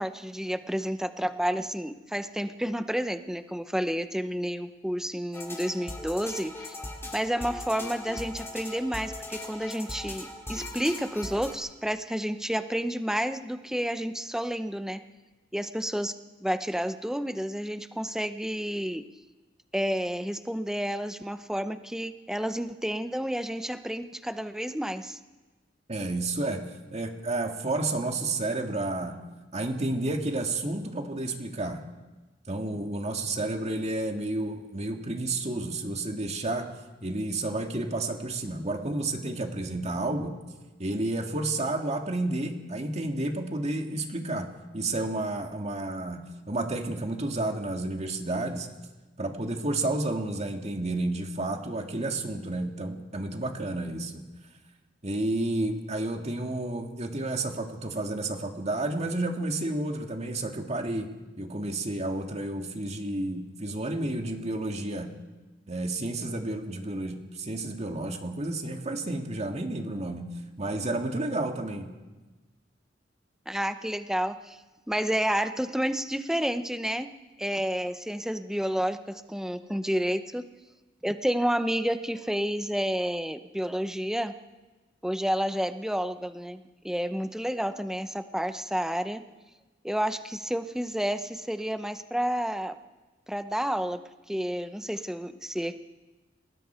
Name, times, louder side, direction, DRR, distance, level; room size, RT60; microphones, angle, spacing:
voice 1, 0.0-6.8 7.1-15.0 15.5-16.1 16.4-19.0 19.7-25.2 73.5-74.6 74.9-77.1 77.4-80.4 81.0-84.3 85.0-89.2 89.8-92.7 93.3-94.0 94.3-95.8, equal, 5° right, 9 dB, 0.9 m, -30 dB
sound 1, 5.3-11.5, left 2 dB, 15° left, 3.5 m, -39 dB
voice 2, 25.9-29.2 29.5-31.8 32.5-36.7 37.0-40.4 40.8-48.7 49.2-54.2 55.0-61.1 61.4-65.1 65.7-71.9, right 2 dB, 35° right, 4 dB, 2.0 m, -31 dB
29.0 x 20.0 x 4.5 m, 1.2 s
head